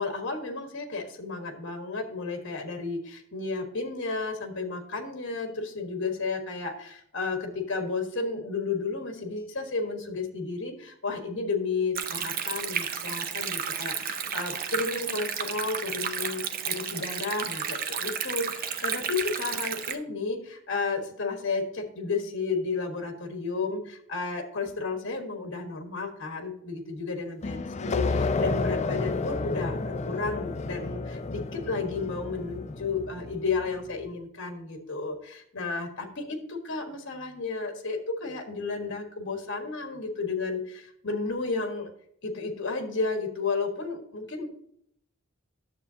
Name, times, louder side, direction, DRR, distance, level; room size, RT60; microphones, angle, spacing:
voice 1, 0.0-41.9 42.2-44.5, left 4 dB, 55° left, 4 dB, 1.4 m, -32 dB
Stream, 11.9-19.9, right 7 dB, 40° right, 0.6 m, -32 dB
sound 1, 27.4-33.8, left 3 dB, 30° left, 0.4 m, -31 dB
10.0 x 7.1 x 2.8 m, 0.68 s
head